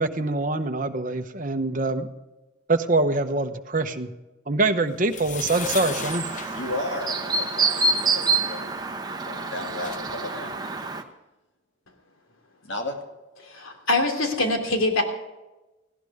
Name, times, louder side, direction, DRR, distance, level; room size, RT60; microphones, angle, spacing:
voice 1, 0.0-2.1 2.7-4.1 4.5-6.3, right 2 dB, 40° right, 6 dB, 1.0 m, -24 dB
sound 1, 5.0-7.6 9.3-9.4 9.6-10.0, left 7 dB, 40° left, 0.8 m, -36 dB
Chirp tweet, 5.5-11.0, right 4 dB, 20° right, 1.0 m, -27 dB
voice 2, 6.5-8.8 9.2-10.5 12.6-13.0, left 2 dB, 60° left, 2 dB, 2.7 m, -34 dB
voice 3, 13.4-15.0, left 2 dB, 90° left, 3 dB, 2.9 m, -24 dB
18.5 x 16.0 x 3.6 m, 1.1 s
head